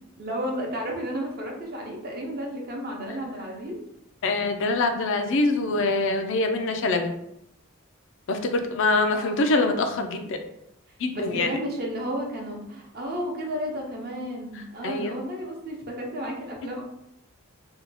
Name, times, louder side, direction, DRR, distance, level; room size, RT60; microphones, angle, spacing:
voice 1, 0.2-3.8 9.1-10.0 11.1-16.8, equal, 50° right, 0 dB, 0.7 m, -33 dB
voice 2, 4.2-7.1 8.3-10.4 11.0-11.5 14.8-15.1, left 2 dB, 65° left, 6 dB, 0.4 m, -24 dB
2.7 x 2.3 x 4.0 m, 0.81 s
head